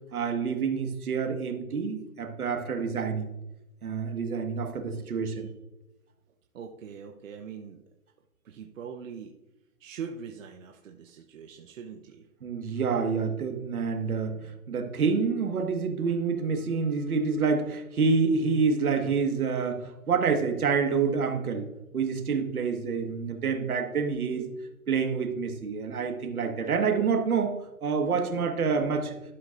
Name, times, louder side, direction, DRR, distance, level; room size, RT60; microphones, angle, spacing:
voice 1, 0.1-3.3 3.8-5.5 12.4-14.4 14.7-21.7 21.9-24.5 24.9-27.5 27.8-29.2, right 5 dB, 80° right, 5 dB, 1.8 m, -27 dB
voice 2, 6.5-7.8 8.4-9.3 9.8-12.3, right 6 dB, 60° right, 3 dB, 0.9 m, -42 dB
12.0 x 9.7 x 2.6 m, 0.94 s
hypercardioid pair, 160°, 43 cm